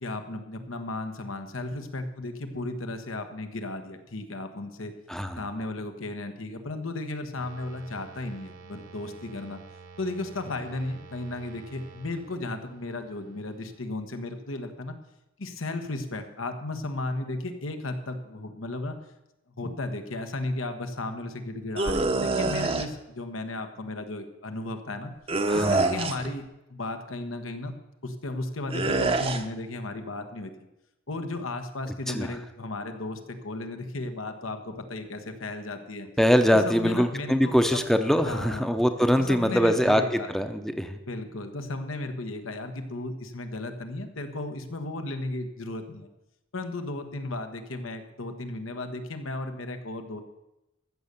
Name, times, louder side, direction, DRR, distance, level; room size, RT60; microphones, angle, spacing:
voice 1, 0.0-4.9 5.4-9.6 10.0-14.9 15.4-19.0 19.6-25.1 25.5-26.4 26.7-27.7 28.0-30.5 31.1-36.1 36.5-37.8 38.3-38.7 39.2-40.3 41.1-46.1 46.5-50.2, left 2 dB, 85° left, 7 dB, 1.3 m, -34 dB
voice 2, 5.1-5.4 25.5-26.0 32.1-32.3 36.2-41.0, equal, ahead, 7 dB, 0.7 m, -23 dB
sound 1, 7.4-13.8, right 5 dB, 70° right, 1.5 m, -49 dB
sound 2, 21.8-22.9 25.3-26.3 28.7-29.4, right 3 dB, 30° right, 0.8 m, -25 dB
14.5 x 6.9 x 6.8 m, 0.93 s
head